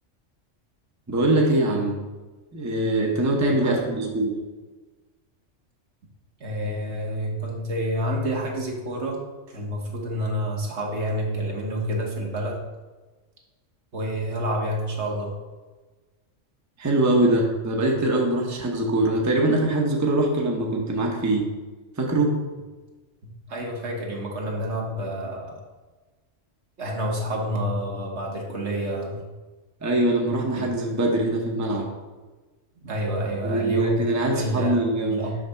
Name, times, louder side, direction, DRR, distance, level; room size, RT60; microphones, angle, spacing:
voice 1, 1.1-2.0 2.5-4.4 16.8-21.5 22.0-22.4 29.8-31.9 33.4-35.2, right 1 dB, 15° right, -1 dB, 0.8 m, -23 dB
voice 2, 3.4-3.8 6.4-12.6 13.9-15.3 23.2-25.6 26.8-29.2 30.6-30.7 32.8-34.0 34.3-34.8 35.1-35.4, equal, 65° right, -1 dB, 1.4 m, -29 dB
6.4 x 3.3 x 5.7 m, 1.2 s
omnidirectional pair, 1.3 m